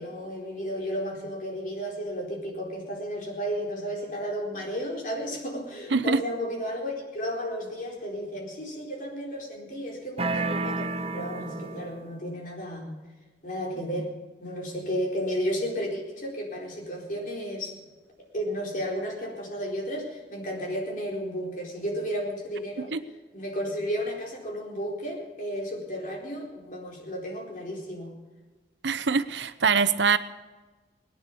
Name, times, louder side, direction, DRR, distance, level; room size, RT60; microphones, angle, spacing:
voice 1, 0.0-13.0 13.4-14.1 14.4-17.8 18.3-22.9 23.3-28.1, equal, 50° left, -1 dB, 4.4 m, -33 dB
sound 1, 10.2-12.1, right 3 dB, 35° right, 0.8 m, -31 dB
voice 2, 28.8-30.2, right 5 dB, 85° right, 13 dB, 0.8 m, -23 dB
20.5 x 10.0 x 6.9 m, 1.3 s
head